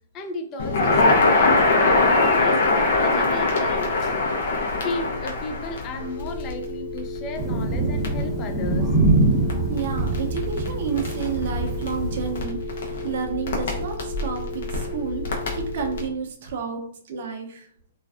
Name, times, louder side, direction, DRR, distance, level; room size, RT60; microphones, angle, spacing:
voice 1, 0.1-2.6 3.0-4.3 4.8-8.9, left 2 dB, 30° left, 6 dB, 0.3 m, -35 dB
Crackle, 0.6-16.1, left 3 dB, 65° left, 0.6 m, -24 dB
sound 1, 6.0-16.0, left 2 dB, 75° right, 1.0 m, -35 dB
Thunder, 7.3-12.4, right 2 dB, 5° right, 0.8 m, -24 dB
voice 2, 9.7-12.6 12.9-15.2 15.5-17.6, right 6 dB, 60° right, 2 dB, 0.5 m, -30 dB
2.4 x 2.2 x 2.4 m, 0.62 s
hypercardioid pair, 135°, 0 cm